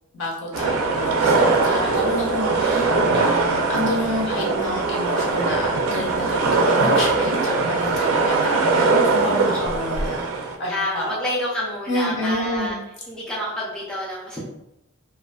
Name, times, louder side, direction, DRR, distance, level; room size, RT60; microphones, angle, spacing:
voice 1, 0.1-11.2 11.9-12.7, left 1 dB, 70° left, -3 dB, 0.8 m, -29 dB
sound 1, 0.5-10.6, right 3 dB, 85° right, 0.4 m, -21 dB
voice 2, 10.7-12.7 13.1-14.4, equal, 5° left, -6 dB, 0.4 m, -28 dB
2.4 x 2.4 x 2.2 m, 0.89 s
head